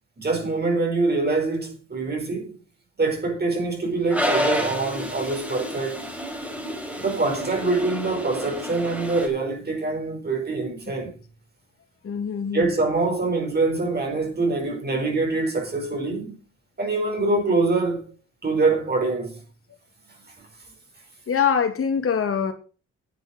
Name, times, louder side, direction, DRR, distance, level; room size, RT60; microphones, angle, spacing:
voice 1, 0.2-2.6 3.0-6.1 7.0-11.1 12.5-16.4 16.8-18.1 18.4-19.4 20.4-20.5, right 3 dB, 35° right, 4.9 m, -24 dB
Toilet flush, 4.1-9.3, equal, 5° right, 4.6 m, -29 dB
voice 2, 12.0-12.7 21.3-22.5, left 7 dB, 45° left, 2.8 m, -23 dB
10.5 x 8.1 x 6.3 m
cardioid pair, 90°, 30 cm